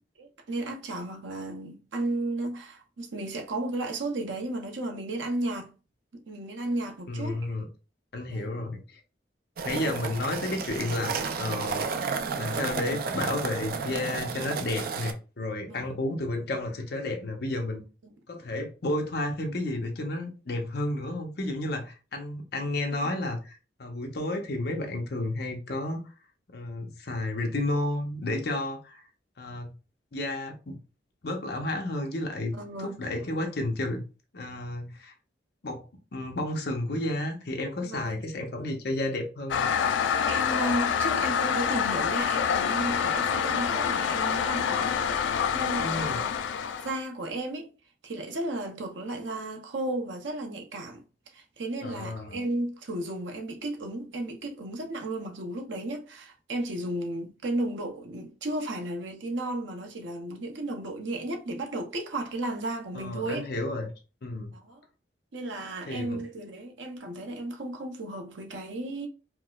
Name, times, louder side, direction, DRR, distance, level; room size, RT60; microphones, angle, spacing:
voice 1, 0.2-5.7 6.1-7.5 8.3-8.5 15.7-15.9 18.0-18.1 22.9-23.2 32.5-33.0 37.8-38.2 40.3-46.4 46.8-47.7 48.0-51.0 51.3-63.5 64.5-64.8 65.3-69.1, right 1 dB, 85° right, 0.7 m, -34 dB
voice 2, 7.1-7.7 8.1-9.0 9.6-11.8 12.4-17.8 18.3-26.0 26.5-29.0 29.4-29.7 30.1-30.8 31.2-32.5 32.8-34.0 34.3-35.1 35.6-35.8 36.1-39.7 45.8-46.2 51.8-52.4 62.9-63.9 64.2-64.5 65.9-66.2, left 1 dB, 60° left, 0.8 m, -32 dB
sound 1, 9.6-15.1, right 5 dB, 55° right, 0.4 m, -32 dB
Toilet flush, 39.5-47.0, left 7 dB, 80° left, 0.3 m, -27 dB
4.6 x 2.0 x 2.3 m
head